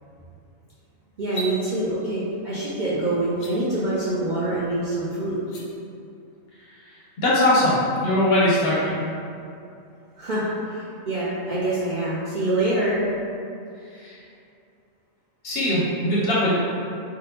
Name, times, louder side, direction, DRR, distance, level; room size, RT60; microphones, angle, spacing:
sound 1, 1.2-1.5 3.3-3.5 5.4-5.6, right 1 dB, 90° left, 1.1 m, -35 dB
voice 1, 1.2-5.4 10.2-13.0, right 1 dB, 60° right, -10 dB, 0.5 m, -25 dB
voice 2, 7.2-9.0 13.9-14.2 15.4-16.6, left 1 dB, 60° left, -6 dB, 0.7 m, -21 dB
3.7 x 2.2 x 2.8 m, 2.6 s
omnidirectional pair, 1.4 m